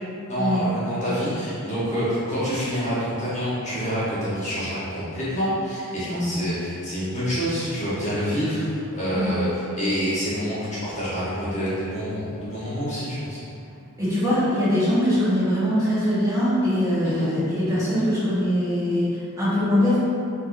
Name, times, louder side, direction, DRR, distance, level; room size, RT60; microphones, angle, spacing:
voice 1, 0.3-13.4 17.0-17.3, equal, 35° left, -10 dB, 1.1 m, -27 dB
voice 2, 14.0-20.0, equal, 15° right, -12 dB, 1.3 m, -22 dB
4.5 x 3.6 x 2.6 m, 2.7 s
head